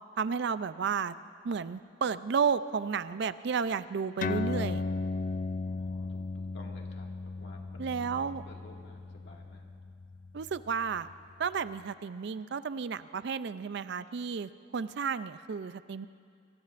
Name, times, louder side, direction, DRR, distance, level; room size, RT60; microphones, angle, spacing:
voice 1, 0.2-1.1 1.4-4.8 7.8-8.4 10.3-11.1 11.4-16.1, right 6 dB, 65° right, 14 dB, 0.4 m, -32 dB
sound 1, 4.2-11.1, left 3 dB, 45° left, 0.4 m, -36 dB
voice 2, 5.6-9.7, left 2 dB, 65° left, 0 dB, 2.0 m, -54 dB
25.5 x 22.0 x 2.5 m, 2.4 s
head